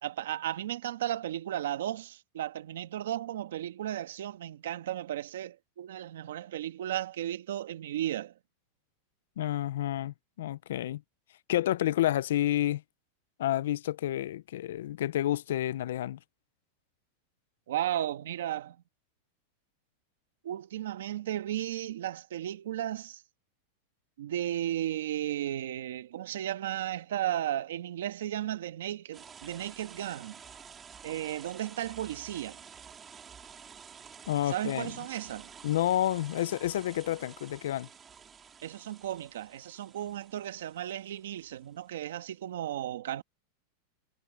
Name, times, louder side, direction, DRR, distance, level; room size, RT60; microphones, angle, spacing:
voice 1, 0.0-8.3 17.7-18.8 20.4-23.2 24.2-30.4 31.0-32.6 34.5-35.5 38.6-43.2, right 12 dB, 85° right, 1.5 m, -34 dB
voice 2, 9.4-11.0 11.5-12.8 13.4-16.2 34.3-34.9 35.6-37.9, left 13 dB, 75° left, 0.4 m, -29 dB
sound 1, 29.1-41.7, right 7 dB, 15° right, 2.8 m, -51 dB
supercardioid pair, 180°, 0 cm